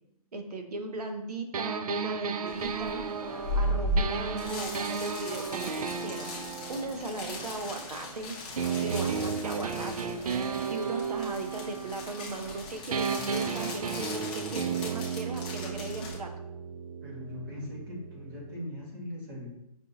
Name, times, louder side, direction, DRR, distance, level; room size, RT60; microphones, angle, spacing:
voice 1, 0.3-3.0 3.6-6.4 6.7-8.4 8.8-16.3, right 2 dB, 90° right, 5 dB, 0.9 m, -38 dB
sound 1, 1.5-8.1 8.6-12.6 12.9-18.6, right 6 dB, 70° right, 0.4 m, -34 dB
sound 2, 2.5-16.2, left 1 dB, 15° left, 0.6 m, -37 dB
voice 2, 17.0-19.5, left 1 dB, 35° right, -4 dB, 1.5 m, -40 dB
5.3 x 2.9 x 2.7 m, 0.83 s
hypercardioid pair, 170°, 19 cm